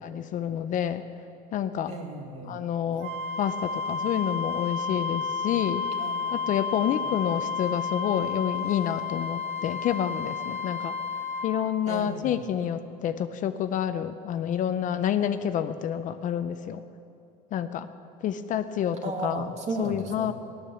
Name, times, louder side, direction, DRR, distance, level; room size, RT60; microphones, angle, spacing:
voice 1, 0.0-1.0 1.5-1.9 2.5-5.9 6.3-10.9 11.4-16.8 17.5-17.9 18.2-19.5 19.8-20.3, left 9 dB, 40° left, 10 dB, 0.6 m, -28 dB
voice 2, 1.9-2.6 6.0-6.5 6.7-7.1 11.9-12.4 19.0-20.3, right 3 dB, 35° right, 2 dB, 2.3 m, -35 dB
Wind instrument woodwind instrument, 3.0-11.6, left 5 dB, 65° right, 1.5 m, -31 dB
15.5 x 12.0 x 7.0 m, 2.6 s
supercardioid pair, 125°, 20 cm